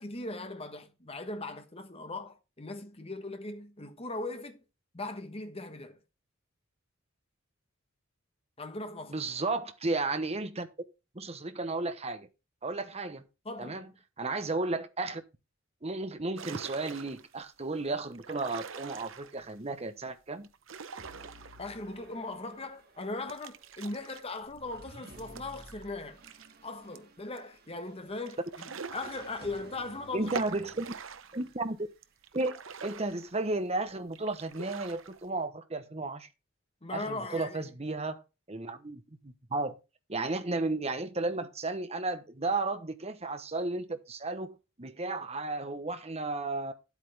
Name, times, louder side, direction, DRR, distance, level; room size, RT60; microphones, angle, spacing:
voice 1, 0.0-4.6 4.9-6.0 8.6-9.2 13.4-13.8 21.6-26.2 26.6-28.4 28.9-30.4 36.8-37.6, left 2 dB, 30° left, 1.3 m, -39 dB
voice 2, 9.1-10.7 11.1-12.3 12.6-13.2 13.6-13.9 14.2-15.2 15.8-20.5 21.2-21.3 30.1-30.9 31.3-31.9 32.3-36.3 36.9-38.2 38.5-39.7 40.1-46.7, right 2 dB, 30° right, 1.1 m, -33 dB
sound 1, 16.4-17.4 18.1-19.6 20.4-22.0 22.4-22.5 23.3-26.5 27.0-27.1 27.4-27.5 28.3-29.8 30.3-31.5 32.0-33.7 34.1-35.3, right 5 dB, 75° right, 0.8 m, -44 dB
sound 2, 21.0-32.3, right 1 dB, 50° right, 1.9 m, -55 dB
10.0 x 8.4 x 3.4 m
head